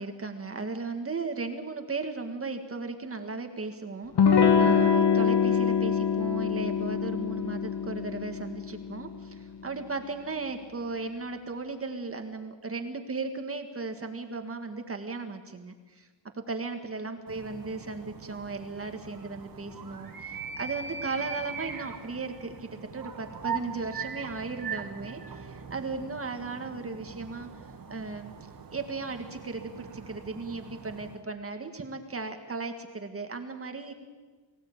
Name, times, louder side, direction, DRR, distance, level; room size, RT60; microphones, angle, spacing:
voice 1, 0.0-16.1 16.3-27.5 27.9-33.9, right 3 dB, 35° right, 6 dB, 1.9 m, -36 dB
Electric guitar / Strum, 4.2-9.5, left 6 dB, 80° left, 1.9 m, -24 dB
sound 1, 17.3-31.2, right 6 dB, 60° right, 2.3 m, -41 dB
23.5 x 16.5 x 8.9 m, 1.3 s
wide cardioid pair, 125°, 40 cm